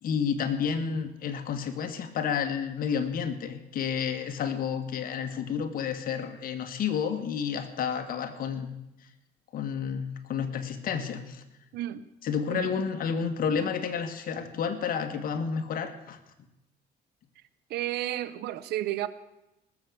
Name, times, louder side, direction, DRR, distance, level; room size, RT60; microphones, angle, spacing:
voice 1, 0.0-8.8 9.5-11.4 12.2-16.2, left 7 dB, 55° left, 8 dB, 1.8 m, -30 dB
voice 2, 11.7-12.0 12.5-12.7 17.7-19.1, right 14 dB, 75° right, 16 dB, 0.9 m, -32 dB
19.0 x 7.5 x 8.2 m, 0.92 s
cardioid pair, 110°, 17 cm